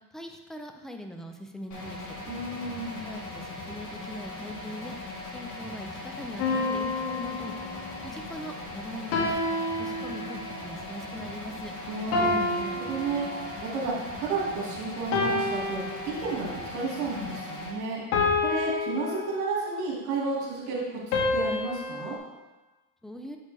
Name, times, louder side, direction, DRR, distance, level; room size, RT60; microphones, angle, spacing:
voice 1, 0.1-2.2 3.0-5.0 5.3-7.5 8.0-9.4 9.8-11.7 23.0-23.4, equal, ahead, 3 dB, 0.3 m, -41 dB
sound 1, 1.7-17.7, left 2 dB, 40° left, 2.4 m, -39 dB
voice 2, 2.3-3.0 11.9-18.0 18.4-22.2, right 3 dB, 80° right, -3 dB, 2.2 m, -32 dB
sound 2, 6.4-8.1 9.1-10.6 12.1-13.8 15.1-16.6 18.1-19.9 21.1-22.2, left 3 dB, 70° left, 1.7 m, -29 dB
7.9 x 5.2 x 3.3 m, 1.2 s
supercardioid pair, 105°, 46 cm